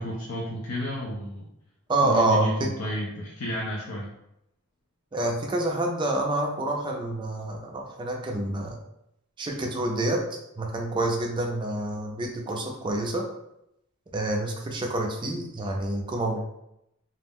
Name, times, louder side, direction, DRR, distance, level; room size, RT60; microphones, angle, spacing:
voice 1, 0.0-1.5 2.0-4.1, equal, 70° left, -3 dB, 0.5 m, -31 dB
voice 2, 1.9-2.7 5.1-8.8 9.4-10.2 10.6-13.3 14.1-16.4, right 2 dB, 20° right, 1 dB, 0.4 m, -27 dB
2.4 x 2.0 x 3.5 m, 0.82 s
head